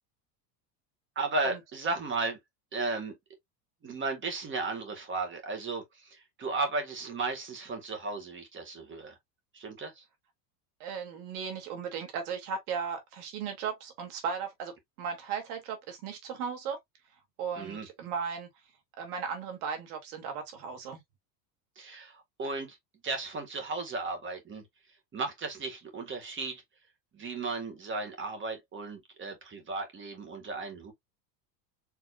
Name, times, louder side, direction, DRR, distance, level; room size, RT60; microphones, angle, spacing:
voice 1, 1.2-2.4 2.7-3.1 3.8-9.2 9.5-10.0 17.6-17.9 21.8-22.8 23.0-24.6 25.1-26.6 27.1-30.9, right 3 dB, 25° right, 1.9 m, -35 dB
voice 2, 10.8-16.8 17.4-18.5 19.0-21.0, right 6 dB, 80° right, 2.5 m, -36 dB
4.8 x 3.5 x 2.5 m
supercardioid pair, 130°, 44 cm